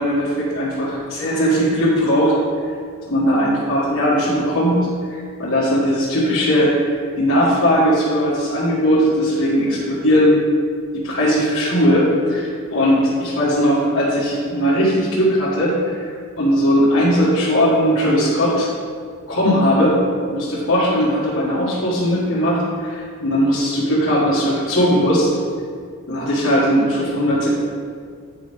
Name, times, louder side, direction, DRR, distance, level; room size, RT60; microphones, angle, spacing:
voice 1, 0.0-2.4 3.1-4.8 5.1-10.4 11.0-18.7 19.3-20.0 20.3-25.3 26.1-27.5, equal, 65° left, -10 dB, 1.5 m, -18 dB
8.6 x 5.3 x 3.5 m, 2.1 s
head